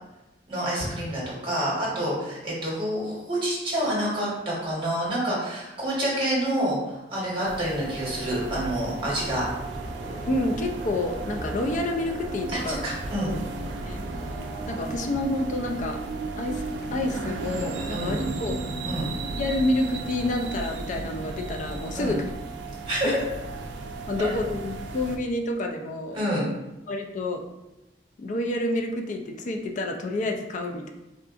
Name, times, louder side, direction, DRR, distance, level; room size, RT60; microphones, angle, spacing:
voice 1, 0.5-9.5 12.5-13.3 17.9-18.2 18.9-19.1 21.9-22.2 22.8-23.2 24.2-24.3 26.1-26.5, right 1 dB, 30° right, -5 dB, 1.2 m, -28 dB
sound 1, 7.4-25.2, right 3 dB, 75° right, 0.4 m, -35 dB
sound 2, 9.2-15.4, right 1 dB, 50° right, 0.9 m, -40 dB
voice 2, 10.3-12.8 13.2-13.4 13.9-14.0 14.7-16.0 16.4-16.6 16.9-18.6 19.4-22.3 23.0-23.1 24.1-26.2 26.9-27.4 28.2-30.9, left 2 dB, 45° left, 3 dB, 0.3 m, -28 dB
3.7 x 2.4 x 2.4 m, 0.98 s
head